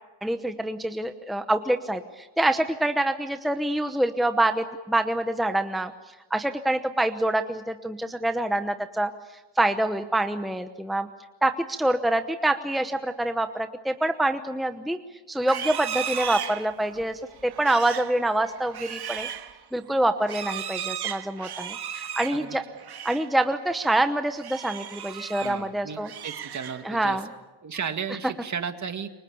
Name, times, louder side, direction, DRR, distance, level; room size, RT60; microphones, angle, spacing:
voice 1, 0.2-5.9 6.3-9.1 9.6-11.1 11.4-15.0 15.3-19.3 19.7-22.6 23.0-26.1 26.8-27.3, right 1 dB, ahead, 8 dB, 0.9 m, -26 dB
Livestock farm animals working animals, 15.4-23.3 23.6-23.9 24.3-25.6 25.9-27.0, right 9 dB, 60° right, 1.8 m, -36 dB
voice 2, 25.4-27.2 27.6-29.1, right 6 dB, 40° right, 8 dB, 2.0 m, -34 dB
29.0 x 24.5 x 7.1 m, 1.2 s
wide cardioid pair, 165°, 43 cm